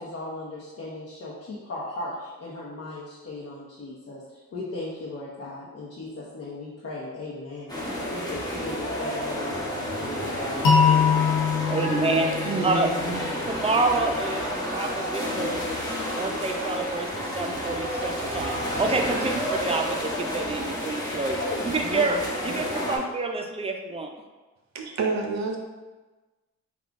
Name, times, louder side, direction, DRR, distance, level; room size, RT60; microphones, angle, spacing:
voice 1, 0.0-11.2 19.1-19.3 21.4-23.0, left 2 dB, 50° left, -6 dB, 0.8 m, -37 dB
sound 1, 7.7-23.0, equal, 10° left, 1.1 m, -30 dB
sound 2, 10.6-13.6, left 6 dB, 80° left, 0.7 m, -23 dB
voice 2, 11.7-12.3 12.6-12.9 13.5-14.5 14.7-15.6 16.2-21.4 21.7-22.2 22.4-24.1, right 3 dB, 20° right, 4 dB, 0.4 m, -27 dB
voice 3, 12.4-13.2 24.7-25.6, right 4 dB, 55° right, 2 dB, 0.7 m, -28 dB
3.7 x 2.3 x 3.5 m, 1.2 s
cardioid pair, 70°, 32 cm